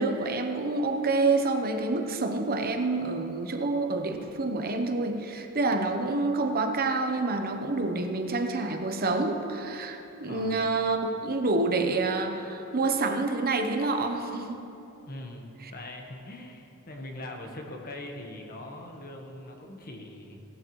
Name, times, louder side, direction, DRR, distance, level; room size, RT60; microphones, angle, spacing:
voice 1, 0.0-14.6 15.6-15.7, right 3 dB, 45° right, 5 dB, 0.9 m, -28 dB
voice 2, 15.1-20.4, left 1 dB, 45° left, 2 dB, 1.3 m, -41 dB
17.0 x 12.0 x 3.2 m, 2.9 s
head